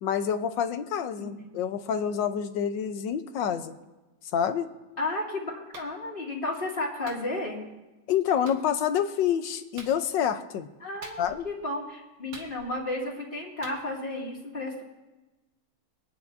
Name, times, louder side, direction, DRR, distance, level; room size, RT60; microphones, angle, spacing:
voice 1, 0.0-3.8 4.3-4.7 8.1-10.7 11.2-11.5, left 8 dB, 70° left, 9 dB, 1.4 m, -27 dB
voice 2, 1.2-1.6 5.0-7.6 10.8-14.8, left 2 dB, 25° left, -3 dB, 2.5 m, -33 dB
Clapping, 5.7-5.9 7.1-7.3 8.5-8.6 9.8-10.0 11.0-11.5 12.3-12.9 13.6-13.8, right 3 dB, 85° right, 2.5 m, -44 dB
25.5 x 9.7 x 2.7 m, 1.1 s
omnidirectional pair, 2.3 m